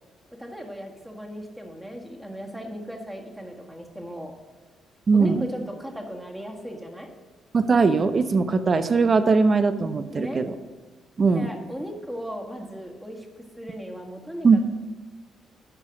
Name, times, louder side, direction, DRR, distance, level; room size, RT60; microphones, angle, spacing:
voice 1, 0.4-4.3 5.1-7.1 10.1-10.5 11.3-14.6, equal, 5° right, 1 dB, 1.7 m, -37 dB
voice 2, 5.1-5.5 7.5-10.5 11.2-11.5 14.4-14.6, right 4 dB, 40° right, 11 dB, 0.7 m, -20 dB
11.0 x 5.7 x 6.2 m, 1.3 s
cardioid pair, 90°, 0 cm